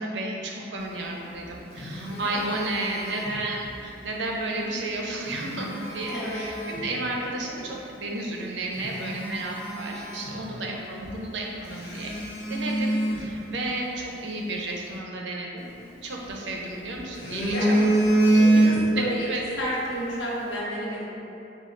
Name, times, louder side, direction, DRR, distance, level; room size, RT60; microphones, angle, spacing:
voice 1, 0.0-12.1 12.5-15.7 16.0-17.9 18.2-18.4 19.0-19.4, right 2 dB, 80° right, -1 dB, 0.6 m, -32 dB
Telephone, 1.2-3.8 5.0-6.9 7.6-7.7 8.3-8.4 8.7-10.8 11.0-11.2 11.7-14.1 15.6-16.6 17.0-19.1 19.4-19.6, right 1 dB, 60° left, 0.9 m, -26 dB
voice 2, 2.0-2.5 6.1-6.4 16.1-16.4 17.5-19.3 19.6-21.1, equal, 90° left, -7 dB, 1.0 m, -32 dB
3.8 x 2.3 x 4.4 m, 2.8 s
head